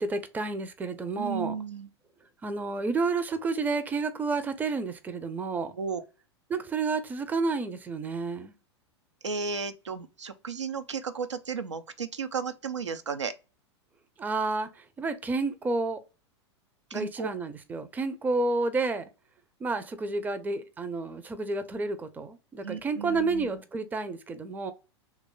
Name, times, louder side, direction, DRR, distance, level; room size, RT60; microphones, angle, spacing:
voice 1, 0.0-1.5 2.4-5.8 6.5-8.5 14.2-14.7 15.0-16.0 16.9-19.1 19.6-24.7, right 3 dB, 10° right, 0.4 m, -30 dB
voice 2, 1.2-1.9 5.8-6.0 9.2-13.3 16.9-17.3 22.6-23.5, right 5 dB, 90° right, 0.4 m, -34 dB
3.0 x 2.3 x 3.7 m
figure-of-eight pair, 95°, 15 cm